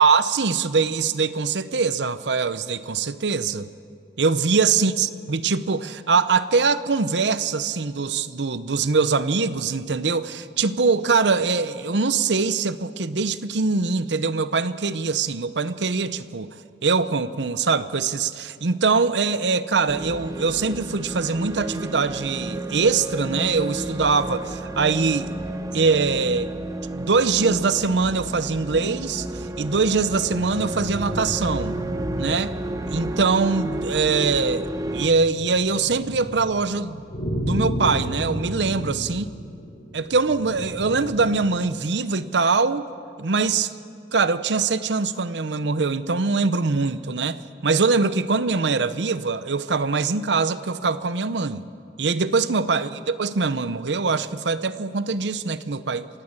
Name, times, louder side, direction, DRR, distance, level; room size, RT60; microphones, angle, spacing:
voice 1, 0.0-3.7 4.2-16.6 16.8-25.3 25.7-26.5 26.9-31.8 32.2-32.5 32.9-37.0 37.4-39.3 39.9-42.8 43.2-43.7 44.1-51.6 52.0-56.1, right 4 dB, 75° right, 14 dB, 0.8 m, -23 dB
sound 1, 19.9-35.1, right 1 dB, 20° right, 0.9 m, -31 dB
sound 2, 29.4-41.7, equal, 50° left, 3.3 m, -34 dB
27.0 x 16.0 x 8.9 m, 2.5 s
head